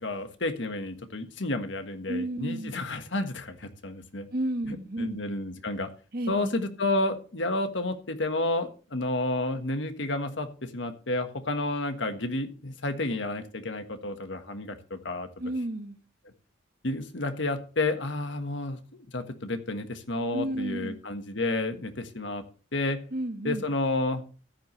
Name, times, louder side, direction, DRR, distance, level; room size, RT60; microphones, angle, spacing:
voice 1, 0.0-4.3 4.7-5.9 6.3-15.3 16.8-18.8 19.1-22.4 22.7-23.0 23.4-24.2, left 2 dB, 75° left, 8 dB, 1.5 m, -31 dB
voice 2, 2.1-2.8 4.3-5.2 6.1-6.3 15.4-16.0 20.3-21.0 23.1-23.6, right 1 dB, 50° right, 8 dB, 1.3 m, -31 dB
14.5 x 10.5 x 3.2 m, 0.36 s
head